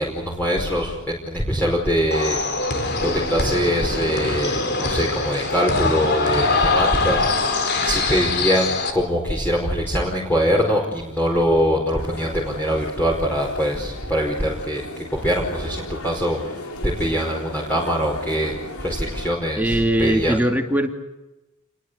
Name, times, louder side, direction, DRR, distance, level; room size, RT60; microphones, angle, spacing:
voice 1, 0.0-18.5 18.8-20.3, equal, 10° left, -2 dB, 4.9 m, -23 dB
sound 1, 2.1-8.9, left 3 dB, 50° left, 4.3 m, -23 dB
sound 2, 12.0-19.3, left 2 dB, 90° left, 4.9 m, -36 dB
voice 2, 19.6-20.9, right 1 dB, 10° right, 4 dB, 2.6 m, -20 dB
29.5 x 22.5 x 8.3 m, 1.0 s
head